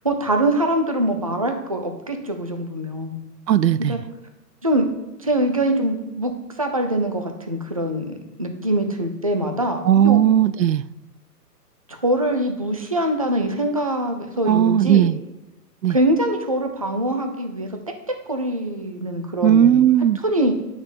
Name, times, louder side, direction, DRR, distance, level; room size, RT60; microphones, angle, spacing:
voice 1, 0.0-3.2 3.8-4.0 4.6-4.8 5.2-6.3 6.6-8.1 8.4-10.2 11.9-15.1 15.9-17.7 18.1-19.8 20.2-20.5, right 1 dB, 20° right, 0.6 m, -23 dB
voice 2, 3.5-4.0 9.8-10.8 14.5-15.2 15.8-16.0 19.4-20.2, right 10 dB, 85° right, 0.7 m, -16 dB
9.7 x 6.4 x 8.1 m
hypercardioid pair, 175°, 49 cm